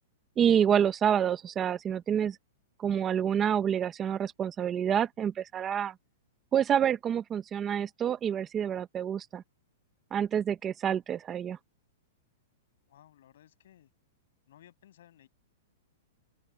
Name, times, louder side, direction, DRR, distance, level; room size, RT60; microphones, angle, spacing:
voice 1, 0.4-2.4 2.8-5.9 6.5-9.4 10.1-11.6, right 9 dB, 15° right, 1.1 m, -28 dB
voice 2, 12.9-13.9 14.5-15.3, left 12 dB, 65° left, 7.3 m, -58 dB
open air
supercardioid pair, 165°, 0 cm